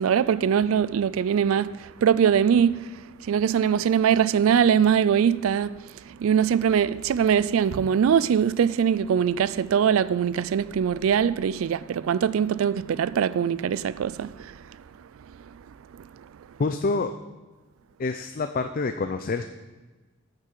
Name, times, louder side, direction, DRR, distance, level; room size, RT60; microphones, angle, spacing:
voice 1, 0.0-14.6 15.9-16.0, right 8 dB, 75° right, 0.3 m, -22 dB
voice 2, 16.6-17.1 18.0-19.4, left 3 dB, 45° left, 0.5 m, -27 dB
8.9 x 6.6 x 7.6 m
head